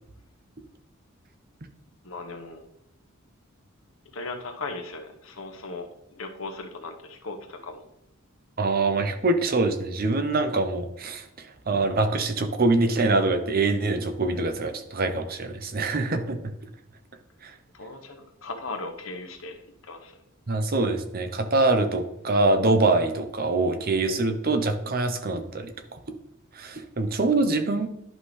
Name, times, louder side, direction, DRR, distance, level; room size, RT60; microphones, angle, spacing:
voice 1, 2.0-2.6 4.1-5.9 6.2-7.9 17.7-19.6 19.8-20.1, left 3 dB, 75° left, 4 dB, 1.2 m, -37 dB
voice 2, 8.6-16.5 17.4-17.5 20.5-26.0 26.5-27.9, right 2 dB, 45° right, 8 dB, 0.8 m, -24 dB
11.0 x 5.6 x 3.3 m, 0.82 s
head